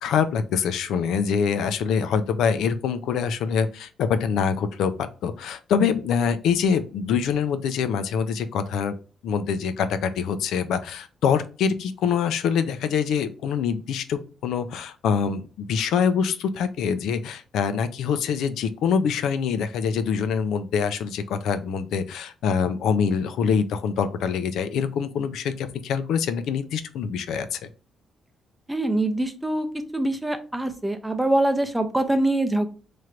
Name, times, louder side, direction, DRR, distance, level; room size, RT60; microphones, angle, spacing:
voice 1, 0.0-9.0 9.2-27.6, left 6 dB, 85° left, 10 dB, 0.4 m, -25 dB
voice 2, 28.7-29.7 29.9-32.7, right 1 dB, 5° right, 7 dB, 0.5 m, -24 dB
3.2 x 2.5 x 4.3 m, 0.35 s
cardioid pair, 155°, 0 cm